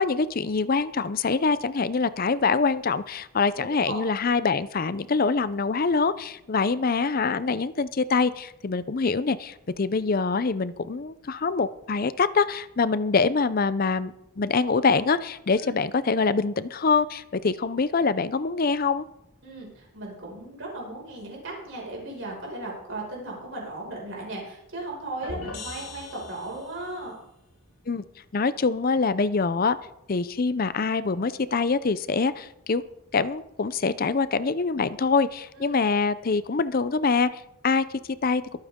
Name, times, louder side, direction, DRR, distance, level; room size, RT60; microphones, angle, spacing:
voice 1, 0.0-19.1 27.9-28.0 28.3-29.8 30.1-32.8 33.1-37.8 38.2-38.4, left 4 dB, 40° left, 15 dB, 0.5 m, -24 dB
voice 2, 3.5-4.0 15.6-15.7 19.4-27.1 35.5-35.8, right 2 dB, 60° right, -2 dB, 5.6 m, -36 dB
sound 1, 25.2-26.9, left 2 dB, 90° left, 4.6 m, -39 dB
22.5 x 8.9 x 3.7 m, 0.80 s
head